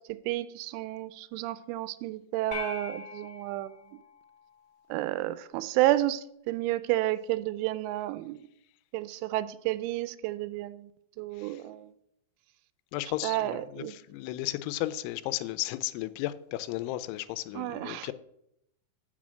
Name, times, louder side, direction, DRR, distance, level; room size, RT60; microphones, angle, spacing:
voice 1, 0.3-3.8 4.9-8.4 8.9-10.9 11.2-11.9 13.2-13.9 17.6-18.1, right 15 dB, 90° right, 3.0 m, -31 dB
sound 1, 2.5-5.0, left 4 dB, 10° left, 1.5 m, -42 dB
voice 2, 12.9-18.1, left 15 dB, 85° left, 3.0 m, -34 dB
8.4 x 6.1 x 7.4 m
omnidirectional pair, 5.4 m